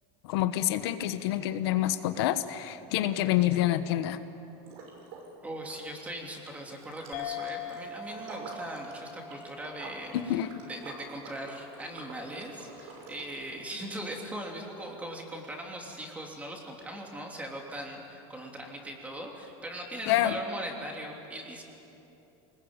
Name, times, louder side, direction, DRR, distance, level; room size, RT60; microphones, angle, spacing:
voice 1, 0.2-4.2 10.1-10.5 20.1-20.4, left 13 dB, 80° left, 10 dB, 1.2 m, -27 dB
Liquid, 4.6-5.3 5.6-13.5, right 3 dB, 70° right, 6.2 m, -48 dB
voice 2, 5.4-21.6, right 1 dB, 10° right, 1 dB, 3.1 m, -40 dB
sound 1, 7.1-12.0, left 6 dB, 60° left, 3.8 m, -43 dB
25.0 x 20.5 x 9.0 m, 2.9 s
supercardioid pair, 160°, 13 cm